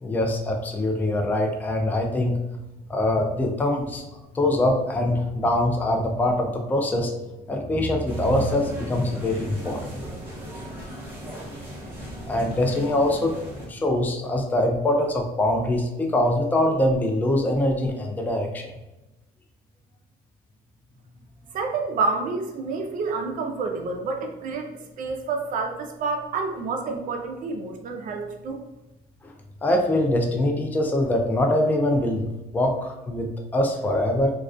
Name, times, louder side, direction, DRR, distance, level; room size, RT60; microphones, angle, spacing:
voice 1, 0.0-2.4 2.9-4.0 4.3-7.1 7.5-10.0 12.3-13.3 13.7-18.7 29.2-29.3 29.6-32.3 32.5-34.3, left 1 dB, 10° left, 2 dB, 0.3 m, -23 dB
sound 1, 8.1-13.7, equal, 10° right, 0.8 m, -38 dB
voice 2, 21.5-28.6, right 4 dB, 55° right, 3 dB, 0.5 m, -29 dB
2.3 x 2.2 x 2.3 m, 1.0 s
cardioid pair, 110°, 17 cm